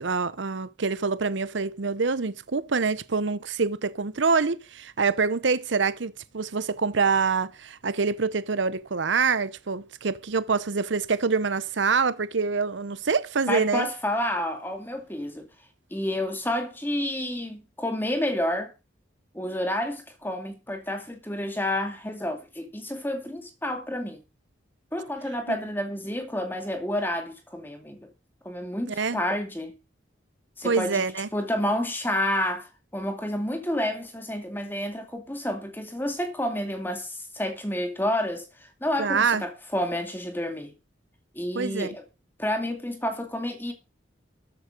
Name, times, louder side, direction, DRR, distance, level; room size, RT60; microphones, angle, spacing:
voice 1, 0.0-13.9 25.5-25.6 29.0-29.2 30.6-31.3 39.0-39.4 41.5-41.9, right 5 dB, 75° right, 0.8 m, -25 dB
voice 2, 13.5-15.5 15.9-18.7 19.3-24.2 24.9-28.1 28.4-29.8 30.6-31.0 31.3-38.4 38.8-40.7 41.3-42.0 42.4-43.7, left 1 dB, 10° left, 2.3 m, -29 dB
13.5 x 8.0 x 5.2 m
head